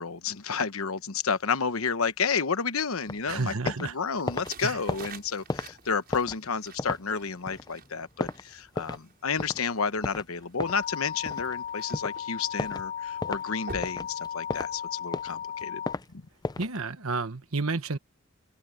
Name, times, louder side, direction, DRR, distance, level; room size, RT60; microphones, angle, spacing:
voice 1, 0.0-15.8, left 5 dB, 80° left, 1.1 m, -31 dB
sound 1, 3.1-9.1 9.4-9.6 10.0-11.6 11.9-12.2 12.6-12.9 13.2-13.4 13.8-14.7 15.0-16.0 16.4-16.8, left 3 dB, 20° left, 0.5 m, -34 dB
voice 2, 3.3-3.9 4.6-4.8 16.6-18.0, right 3 dB, 80° right, 1.4 m, -30 dB
sound 2, 4.2-14.9, right 3 dB, 50° right, 6.3 m, -49 dB
sound 3, 10.6-15.9, left 8 dB, 50° left, 1.0 m, -36 dB
head